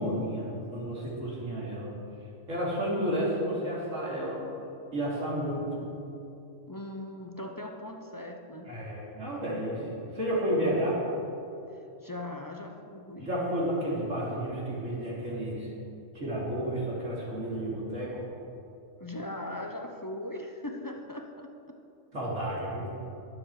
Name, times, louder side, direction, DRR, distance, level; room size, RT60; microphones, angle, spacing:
voice 1, 0.0-1.9 2.5-4.4 4.9-5.8 8.7-11.0 13.2-15.7 16.1-18.2 22.1-22.9, equal, 65° right, -6 dB, 3.6 m, -31 dB
voice 2, 6.7-8.7 10.7-11.0 11.7-13.3 19.0-21.8, left 1 dB, 20° left, 3 dB, 0.6 m, -40 dB
22.0 x 7.5 x 4.9 m, 2.8 s
omnidirectional pair, 1.4 m